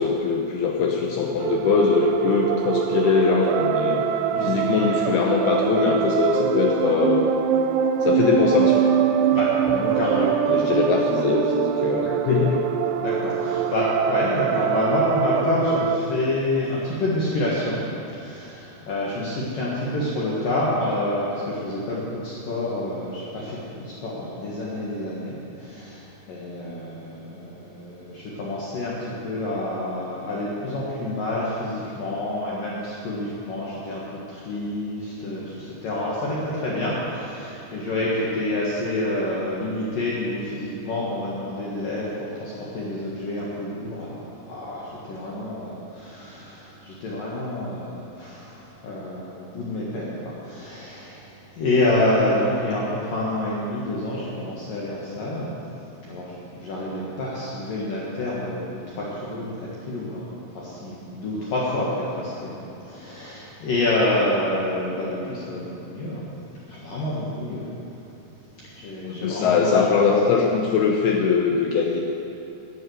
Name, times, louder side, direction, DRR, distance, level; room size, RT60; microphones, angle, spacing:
voice 1, 0.0-4.0 4.4-7.3 8.0-8.8 9.8-9.9 10.5-12.7 69.0-72.0, left 5 dB, 75° left, 1 dB, 2.4 m, -22 dB
sound 1, 1.4-16.0, right 8 dB, 85° right, 3.0 m, -23 dB
voice 2, 9.3-10.3 13.0-17.8 18.1-55.5 56.0-66.3 66.7-67.7 68.6-70.0, left 1 dB, 60° left, -6 dB, 2.8 m, -28 dB
11.0 x 10.5 x 7.9 m, 2.9 s
omnidirectional pair, 5.3 m